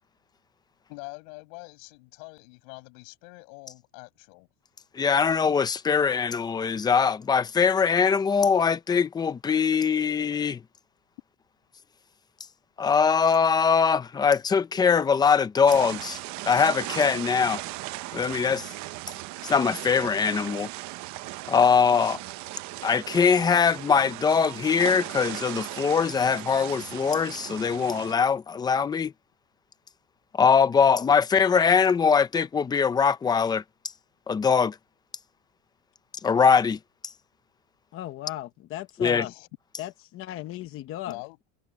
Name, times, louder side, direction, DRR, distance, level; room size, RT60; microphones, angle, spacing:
voice 1, 0.9-4.5 39.1-39.5 41.1-41.4, left 34 dB, 85° left, 7.3 m, -44 dB
voice 2, 4.9-10.6 12.8-16.2 16.4-17.6 18.1-18.7 19.4-20.7 21.5-22.2 22.8-29.1 30.3-33.6 34.3-34.8 36.2-36.8 39.0-39.2, left 6 dB, 10° left, 0.4 m, -22 dB
Taipei Tamsui River Side, 15.7-28.1, right 18 dB, 50° right, 0.8 m, -37 dB
voice 3, 37.9-39.3 39.8-41.2, left 13 dB, 35° left, 0.9 m, -36 dB
cardioid pair, 170°, 37 cm